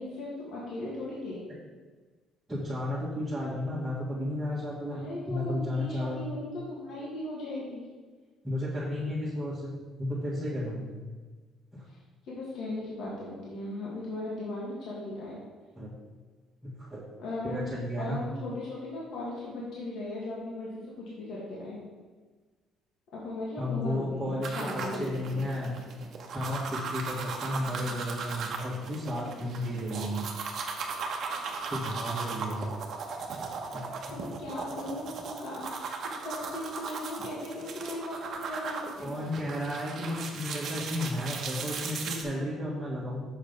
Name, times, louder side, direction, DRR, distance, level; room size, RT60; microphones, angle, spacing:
voice 1, 0.0-1.4 4.9-7.8 11.9-12.0 12.3-15.4 17.2-17.6 18.0-21.8 23.1-25.4 34.1-35.9 36.2-39.2, left 1 dB, 60° left, -5 dB, 1.9 m, -37 dB
voice 2, 2.5-6.3 8.4-10.9 11.7-11.8 15.8-15.9 16.6-17.0 17.4-18.2 23.6-25.8 26.3-30.2 31.7-32.7 33.7-33.8 39.0-43.2, left 1 dB, 10° right, -10 dB, 1.7 m, -33 dB
sound 1, 24.4-42.2, right 4 dB, 50° right, 1.0 m, -37 dB
6.7 x 5.1 x 5.3 m, 1.4 s
cardioid pair, 140°, 0 cm